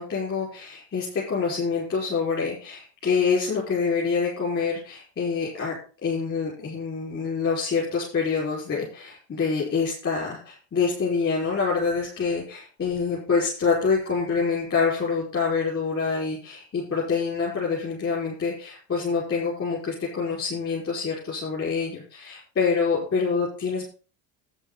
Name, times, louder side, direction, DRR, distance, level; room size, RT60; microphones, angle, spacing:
voice 1, 0.0-23.8, left 5 dB, 35° left, -5 dB, 5.7 m, -26 dB
11.0 x 9.4 x 4.2 m, 0.39 s
cardioid pair, 125°, 42 cm